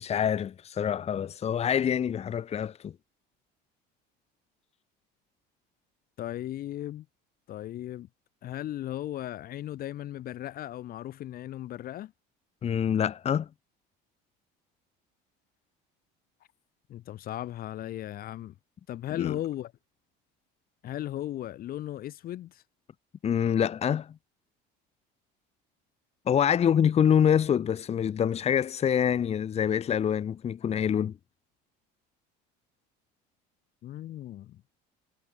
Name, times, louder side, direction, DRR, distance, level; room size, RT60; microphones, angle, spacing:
voice 1, 0.0-2.9 12.6-13.5 19.1-19.4 23.2-24.2 26.2-31.2, left 8 dB, 30° left, 1.5 m, -26 dB
voice 2, 6.2-7.1 7.5-8.1 8.4-12.1 16.9-18.5 18.9-19.7 20.8-22.6 33.8-34.6, left 13 dB, 50° left, 1.7 m, -36 dB
cardioid pair, 130°, 20 cm